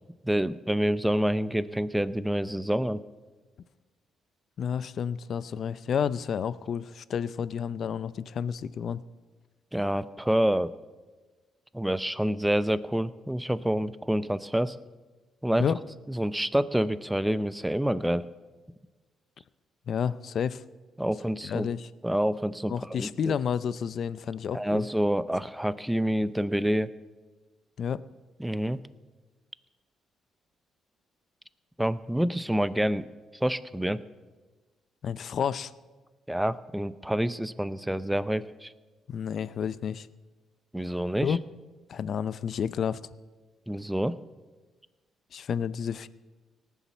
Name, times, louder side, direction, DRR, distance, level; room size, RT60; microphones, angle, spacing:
voice 1, 0.2-3.0 9.7-10.7 11.7-14.8 15.4-15.6 16.1-18.3 21.0-21.7 22.0-23.3 24.5-26.9 28.4-28.8 31.8-33.1 33.4-34.0 36.3-38.7 40.7-41.4 43.7-44.2, equal, 5° right, 16 dB, 0.5 m, -27 dB
voice 2, 4.6-9.0 15.6-15.8 19.9-20.6 21.4-21.9 22.7-24.8 27.8-28.0 35.0-35.7 39.1-40.1 41.2-41.4 41.9-43.0 45.3-46.1, left 7 dB, 60° left, 17 dB, 0.5 m, -30 dB
18.5 x 7.3 x 7.0 m, 1.3 s
cardioid pair, 90°, 0 cm